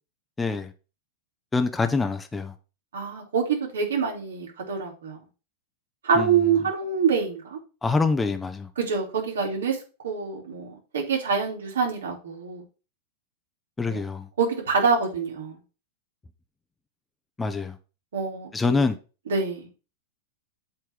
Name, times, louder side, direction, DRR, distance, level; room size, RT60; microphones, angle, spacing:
voice 1, 0.4-0.7 1.5-2.5 6.1-6.4 7.8-8.7 13.8-14.3 17.4-17.8 18.5-19.0, left 4 dB, 10° left, 0.7 m, -25 dB
voice 2, 2.9-5.2 6.0-7.6 8.8-9.8 10.0-12.6 13.9-14.0 14.4-15.6 18.1-18.8 19.3-19.7, right 5 dB, 85° right, 3.0 m, -26 dB
7.7 x 3.5 x 6.2 m
hypercardioid pair, 125°, 0 cm